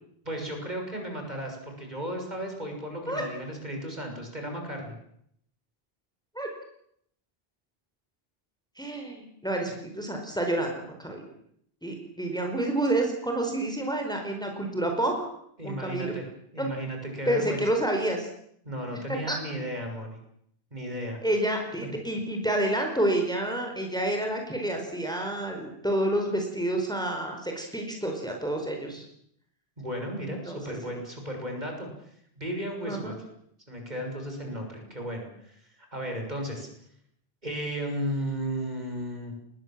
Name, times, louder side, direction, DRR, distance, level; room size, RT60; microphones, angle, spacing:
voice 1, 0.2-4.9 15.6-16.2 16.5-17.6 18.6-20.2 20.7-21.2 29.8-31.9 32.4-33.1 33.7-36.7 37.4-39.3, equal, 45° right, 2 dB, 6.7 m, -34 dB
voice 2, 8.8-11.2 11.8-15.2 15.6-16.1 16.6-16.7 17.2-18.3 19.3-19.4 21.2-29.0 30.4-30.7 32.9-33.2, right 1 dB, 5° left, 2 dB, 4.7 m, -29 dB
25.5 x 20.5 x 7.6 m, 0.71 s
omnidirectional pair, 1.0 m